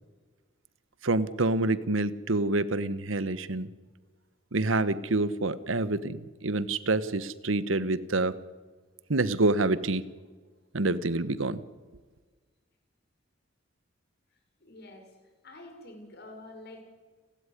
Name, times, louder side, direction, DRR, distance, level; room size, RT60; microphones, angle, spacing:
voice 1, 1.0-3.7 4.5-8.3 9.1-10.0 10.7-11.6, right 2 dB, 85° right, 15 dB, 1.2 m, -27 dB
voice 2, 14.6-15.1 15.4-16.8, left 2 dB, 55° left, 4 dB, 6.3 m, -47 dB
30.0 x 13.5 x 10.0 m, 1.4 s
head